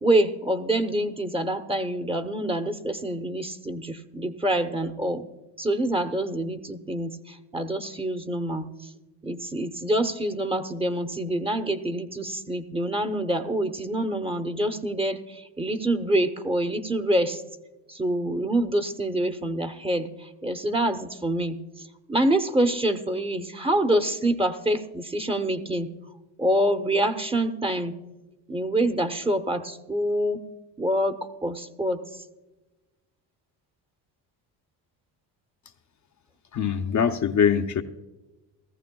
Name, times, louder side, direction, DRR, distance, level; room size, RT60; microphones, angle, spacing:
voice 1, 0.0-5.3 5.6-8.9 9.2-17.4 17.9-21.6 22.1-25.9 26.4-27.9 28.5-30.4 30.8-31.2 31.4-32.0, right 1 dB, 15° right, 0.8 m, -26 dB
voice 2, 36.5-37.8, left 7 dB, 40° left, 0.7 m, -23 dB
17.0 x 14.0 x 2.3 m
cardioid pair, 80°, 43 cm